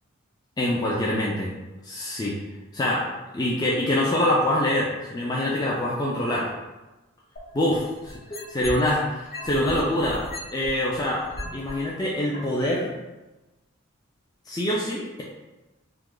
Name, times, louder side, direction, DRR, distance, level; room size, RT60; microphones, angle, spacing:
voice 1, 0.6-1.5 1.8-2.4 2.7-3.1 3.3-6.5 7.5-10.2 10.5-11.2 11.5-12.9 14.5-15.2, left 1 dB, 20° left, -4 dB, 0.3 m, -25 dB
sound 1, 7.4-8.9 9.3-11.7 12.3-12.4, left 1 dB, 50° left, 0.9 m, -37 dB
2.8 x 2.3 x 3.7 m, 1.1 s
head